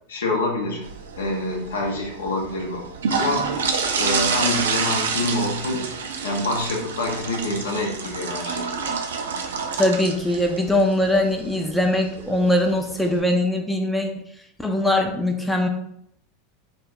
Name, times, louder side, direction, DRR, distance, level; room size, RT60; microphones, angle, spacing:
voice 1, 0.1-0.9 1.2-3.7 4.0-5.9 6.2-9.0, left 2 dB, 80° left, 0 dB, 0.6 m, -26 dB
sound 1, 0.8-13.2, right 5 dB, 80° right, 0.3 m, -29 dB
voice 2, 9.7-14.1 14.6-15.7, left 1 dB, 5° left, 2 dB, 0.4 m, -21 dB
2.3 x 2.1 x 3.4 m, 0.74 s
hypercardioid pair, 95°, 0 cm